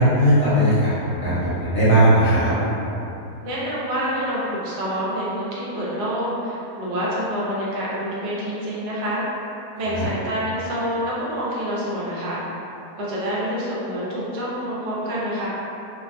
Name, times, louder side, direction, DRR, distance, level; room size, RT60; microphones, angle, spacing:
voice 1, 0.0-2.5 9.9-10.1, right 1 dB, 50° left, -12 dB, 1.1 m, -18 dB
voice 2, 3.4-9.2 9.8-12.4 13.0-15.5, equal, 80° right, -7 dB, 1.2 m, -27 dB
3.0 x 2.1 x 2.5 m, 2.8 s
omnidirectional pair, 1.7 m